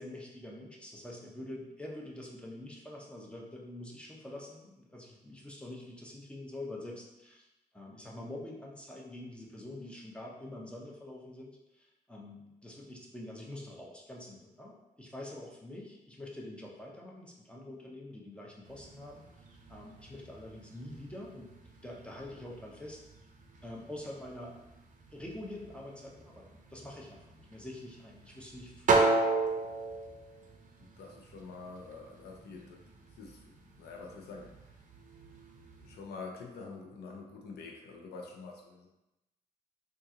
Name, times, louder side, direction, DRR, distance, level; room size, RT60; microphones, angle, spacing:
voice 1, 0.0-7.5 7.7-21.5 21.8-23.0 23.6-24.6 25.1-29.0, left 1 dB, 5° left, -2 dB, 0.7 m, -46 dB
sound 1, 18.6-36.0, right 3 dB, 50° right, 0.5 m, -37 dB
voice 2, 30.8-34.8 35.8-38.9, left 4 dB, 90° left, 0 dB, 0.6 m, -47 dB
3.7 x 2.4 x 2.8 m, 0.95 s
cardioid pair, 80°, 16 cm